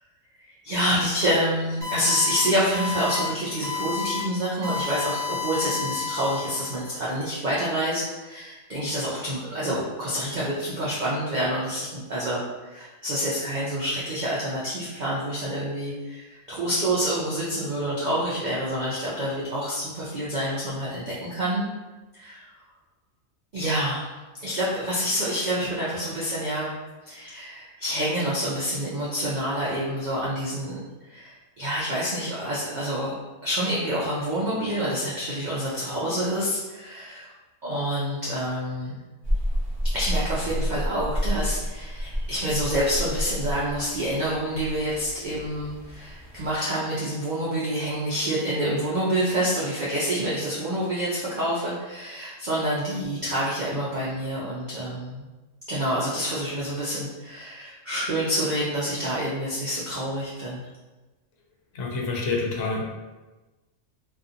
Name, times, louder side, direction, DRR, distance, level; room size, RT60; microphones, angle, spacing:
voice 1, 0.6-21.7 22.1-22.5 23.5-24.1 24.4-26.7 27.0-30.8 31.1-33.1 33.4-37.3 37.6-39.0 39.9-55.2 55.7-60.6, equal, 70° right, -7 dB, 0.4 m, -27 dB
sound 1, 1.8-2.4 2.7-3.3 3.6-4.2 4.6-6.9, left 5 dB, 40° right, 0.9 m, -31 dB
sound 2, 39.2-46.6, equal, 30° left, 1.0 m, -30 dB
voice 2, 61.7-62.8, left 3 dB, 70° left, -1 dB, 0.9 m, -27 dB
2.6 x 2.4 x 2.5 m, 1.2 s
omnidirectional pair, 1.4 m